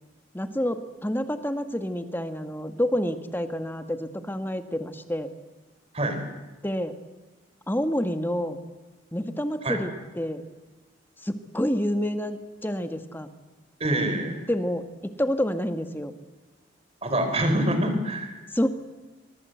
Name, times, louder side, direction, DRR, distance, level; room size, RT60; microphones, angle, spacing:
voice 1, 0.3-5.3 6.6-6.9 7.7-8.6 9.1-10.4 11.2-13.3 14.5-16.1 18.5-18.7, equal, 10° left, 8 dB, 1.5 m, -28 dB
voice 2, 13.8-14.4 17.0-18.4, right 1 dB, 30° right, 7 dB, 4.3 m, -25 dB
24.0 x 23.5 x 7.9 m, 1.2 s
head